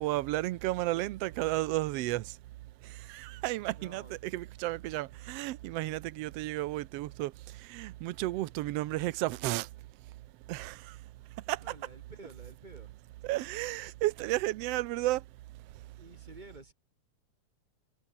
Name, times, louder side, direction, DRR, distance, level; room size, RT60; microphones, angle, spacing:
voice 1, 0.0-2.2 3.1-7.3 7.7-9.7 10.5-10.8 11.5-11.6 13.2-15.2, right 17 dB, 75° right, 1.5 m, -32 dB
voice 2, 3.7-4.1 11.6-12.9 16.0-16.7, right 2 dB, 15° right, 4.6 m, -51 dB
omnidirectional pair, 3.5 m